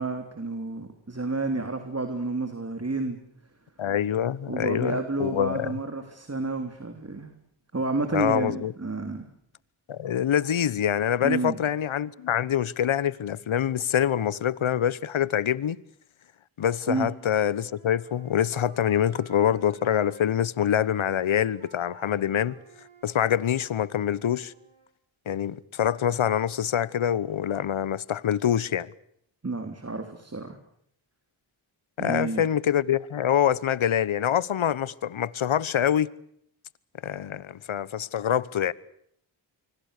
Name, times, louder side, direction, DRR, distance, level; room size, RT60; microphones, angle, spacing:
voice 1, 0.0-3.2 4.5-7.3 7.7-9.3 11.2-11.6 16.9-17.1 29.4-30.6 32.0-32.4, right 3 dB, 30° right, 3.3 m, -30 dB
voice 2, 3.8-5.7 8.1-8.7 9.9-15.8 16.6-22.5 23.0-24.5 25.3-28.9 32.0-36.1 37.0-38.7, left 9 dB, 70° left, 1.1 m, -25 dB
Wind instrument woodwind instrument, 16.6-20.2 20.6-24.9, right 3 dB, 75° right, 5.9 m, -53 dB
25.5 x 24.5 x 6.7 m
cardioid pair, 50°, 49 cm